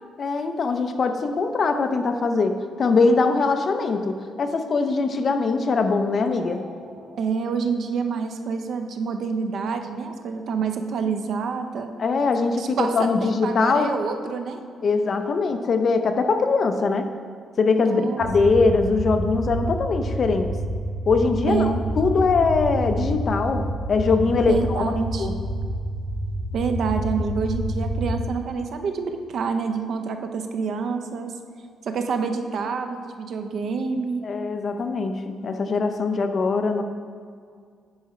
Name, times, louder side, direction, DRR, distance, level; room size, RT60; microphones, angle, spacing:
voice 1, 0.2-6.6 12.0-13.9 14.8-17.1 17.6-20.5 21.1-24.8 25.2-25.3 34.2-36.8, left 4 dB, 45° left, 7 dB, 0.6 m, -22 dB
sound 1, 6.3-7.5, right 3 dB, 90° right, 1.2 m, -46 dB
voice 2, 7.2-11.9 12.6-14.6 17.7-18.2 21.5-21.8 24.5-25.3 26.5-31.3 31.9-34.2, right 5 dB, 60° right, 6 dB, 0.6 m, -27 dB
sound 2, 18.2-28.2, equal, 15° right, 1.5 m, -28 dB
9.6 x 4.2 x 4.9 m, 2.2 s
cardioid pair, 120°, 0 cm